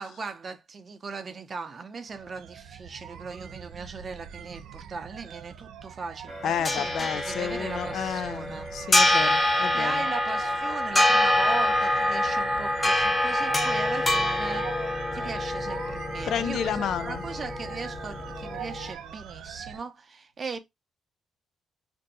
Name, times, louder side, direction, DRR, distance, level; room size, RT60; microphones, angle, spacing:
voice 1, 0.0-8.7 9.7-14.8 15.1-20.6, right 4 dB, 40° right, 0.6 m, -38 dB
sound 1, 2.1-19.8, right 9 dB, 85° right, 0.4 m, -42 dB
sound 2, 6.3-18.9, left 1 dB, 20° left, 0.6 m, -26 dB
voice 2, 6.4-10.0 16.3-17.2, left 8 dB, 70° left, 0.3 m, -31 dB
2.6 x 2.2 x 3.9 m
cardioid pair, 90°, 0 cm